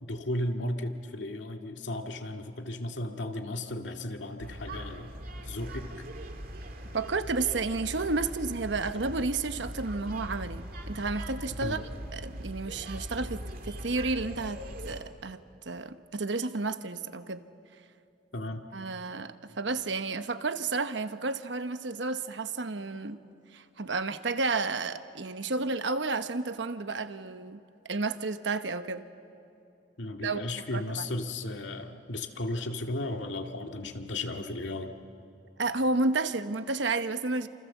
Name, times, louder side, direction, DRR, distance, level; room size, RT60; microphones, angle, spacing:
voice 1, 0.0-5.1 5.4-5.9 11.6-11.8 18.3-18.6 30.0-34.9, left 1 dB, 75° left, 4 dB, 2.0 m, -35 dB
sound 1, 4.4-15.0, equal, 50° right, 2.3 m, -40 dB
voice 2, 6.9-11.8 12.1-17.4 18.7-23.2 23.5-29.1 30.2-30.4 30.7-31.1 35.6-37.5, right 3 dB, 70° right, 10 dB, 1.1 m, -31 dB
29.5 x 27.5 x 7.3 m, 2.7 s
head